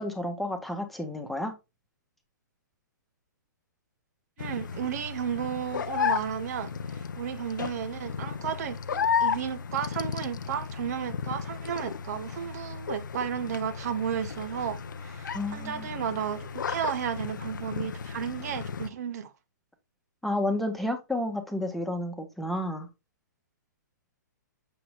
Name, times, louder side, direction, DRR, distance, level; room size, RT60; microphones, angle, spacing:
voice 1, 0.0-1.5 15.3-15.9 20.2-22.9, left 1 dB, ahead, 1.3 m, -31 dB
sound 1, 4.4-18.9, left 7 dB, 75° left, 0.6 m, -34 dB
voice 2, 4.4-19.3, right 8 dB, 55° right, 1.1 m, -33 dB
6.8 x 6.0 x 2.3 m
hypercardioid pair, 130°, 10 cm